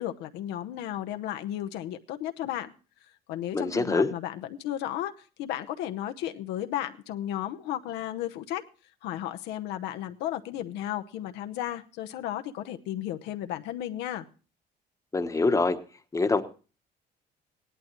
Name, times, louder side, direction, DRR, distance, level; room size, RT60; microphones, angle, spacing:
voice 1, 0.0-2.7 3.3-5.1 5.4-8.6 9.0-14.3, left 12 dB, 90° left, 8 dB, 0.9 m, -34 dB
voice 2, 3.5-4.1 15.1-15.8 16.1-16.4, left 3 dB, 20° left, 8 dB, 1.0 m, -24 dB
17.5 x 11.0 x 3.0 m, 0.35 s
cardioid pair, 110°, 17 cm